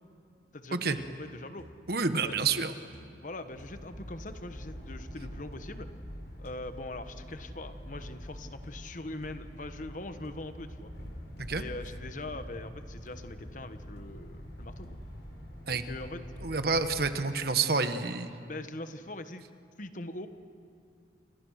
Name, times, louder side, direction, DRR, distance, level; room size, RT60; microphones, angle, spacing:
voice 1, 0.5-1.7 2.2-2.6 3.2-5.9 6.4-10.9 11.5-15.0 15.8-16.2 18.5-19.5 19.8-20.3, left 2 dB, 45° left, 9 dB, 1.2 m, -42 dB
sound 1, 1.0-1.3 1.6-2.0 2.3-2.7 2.9-3.3 3.6-3.9 4.3-4.5 5.5-5.7 6.4-6.5 7.3-7.5 8.0-8.2 8.6-8.8 9.2-9.3 10.2-10.4 11.4-11.6 12.2-12.5 13.1-13.4 14.0-14.2 14.8-15.1 15.7-15.9 16.5-16.8, equal, 65° left, 2.8 m, -54 dB
voice 2, 1.9-2.7 11.5-11.6 15.7-15.9 16.4-18.3, right 4 dB, 60° right, 9 dB, 1.4 m, -28 dB
sound 2, 3.5-17.0, equal, 80° left, 4.4 m, -45 dB
29.0 x 26.0 x 6.5 m, 2.4 s
head